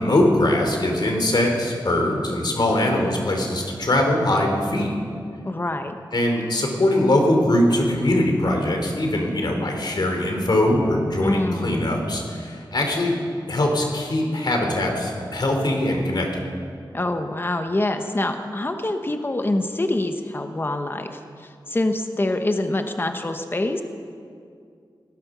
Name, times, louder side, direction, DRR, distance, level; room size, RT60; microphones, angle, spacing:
voice 1, 0.0-4.9 6.1-13.1 13.5-16.3, left 1 dB, 60° left, 2 dB, 3.0 m, -21 dB
voice 2, 5.4-6.0 11.2-11.8 16.9-23.8, left 2 dB, 25° left, 6 dB, 1.0 m, -25 dB
18.5 x 12.5 x 6.1 m, 2.3 s
wide cardioid pair, 95°, 8 cm